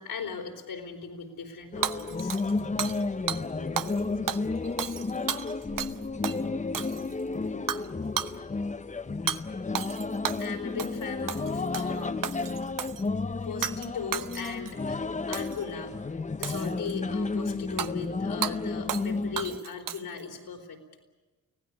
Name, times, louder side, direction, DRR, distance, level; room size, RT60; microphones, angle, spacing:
voice 1, 0.0-2.4 10.4-12.7 13.3-15.0 15.3-15.9 16.4-20.8, left 6 dB, 75° left, 1 dB, 4.2 m, -38 dB
sound 1, 1.7-19.6, left 3 dB, 20° left, 0.8 m, -32 dB
Hammer / Shatter, 1.8-3.0 3.3-3.4 3.8-4.0 4.3-6.0 6.2-6.4 6.7-7.2 7.7-7.9 8.2-8.3 9.3-9.4 9.7-10.5 10.8-11.0 11.3-11.9 12.2-13.0 13.6-13.9 14.1-14.7 15.3-15.6 16.4-17.0 17.8-17.9 18.4-18.5 18.9-19.1 19.4-20.2, right 9 dB, 55° right, 0.9 m, -33 dB
voice 2, 3.4-8.4, left 4 dB, 40° left, 2 dB, 1.8 m, -47 dB
24.5 x 16.5 x 10.0 m, 1.2 s
supercardioid pair, 55°, 38 cm